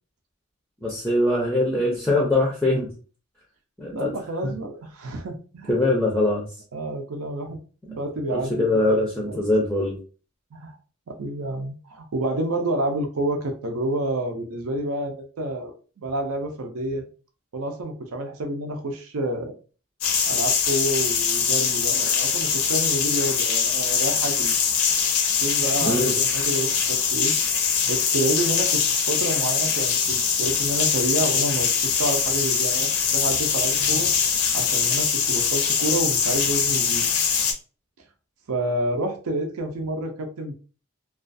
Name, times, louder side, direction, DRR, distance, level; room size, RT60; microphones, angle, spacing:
voice 1, 0.8-2.9 3.8-4.1 4.4-4.5 5.7-6.5 8.3-10.0 25.8-26.1, left 1 dB, 5° left, -3 dB, 0.4 m, -22 dB
voice 2, 3.9-5.7 6.7-7.6 7.9-8.5 10.5-10.8 11.1-17.1 17.5-19.5 20.3-24.5 25.4-27.3 27.8-34.1 34.5-37.0 38.5-40.5, right 1 dB, 85° right, 4 dB, 0.5 m, -29 dB
sound 1, 20.0-37.5, left 6 dB, 85° left, 0.5 m, -22 dB
2.3 x 2.3 x 2.5 m, 0.36 s
head